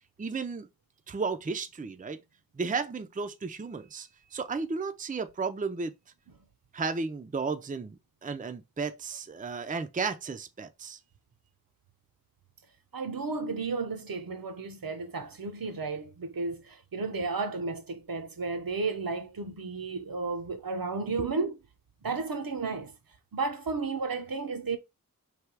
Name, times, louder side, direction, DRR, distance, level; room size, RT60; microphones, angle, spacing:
voice 1, 0.2-0.7 1.1-2.2 2.6-5.9 6.7-11.0, right 4 dB, 25° right, 0.4 m, -34 dB
voice 2, 12.9-21.6 22.0-23.0 23.3-24.8, right 4 dB, 70° right, 0.8 m, -33 dB
3.4 x 2.8 x 4.6 m
wide cardioid pair, 60°, 36 cm